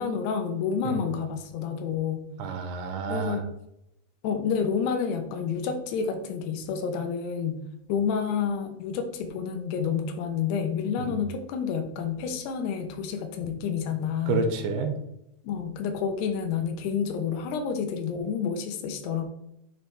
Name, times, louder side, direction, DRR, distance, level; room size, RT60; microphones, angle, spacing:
voice 1, 0.0-2.2 3.1-3.4 4.2-7.6 7.9-14.4 15.4-19.2, left 6 dB, 90° left, 6 dB, 3.0 m, -29 dB
voice 2, 2.4-3.4 11.0-11.2 14.3-14.9, right 4 dB, 85° right, 6 dB, 2.8 m, -29 dB
9.0 x 4.7 x 3.3 m, 0.81 s
omnidirectional pair, 4.6 m